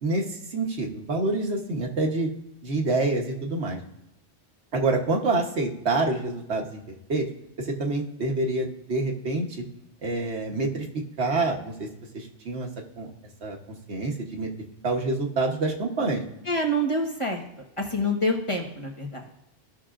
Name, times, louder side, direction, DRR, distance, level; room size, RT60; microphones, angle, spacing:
voice 1, 0.0-2.3 2.6-3.8 4.7-6.8 7.1-7.3 7.6-9.5 10.0-10.8 11.2-11.9 12.1-12.7 13.0-13.1 13.4-13.6 13.9-14.5 14.8-16.2, right 2 dB, 70° right, 1 dB, 1.4 m, -27 dB
voice 2, 16.5-17.4 17.8-19.2, equal, 30° left, 0 dB, 1.2 m, -26 dB
15.5 x 5.9 x 2.5 m, 0.85 s
omnidirectional pair, 1.2 m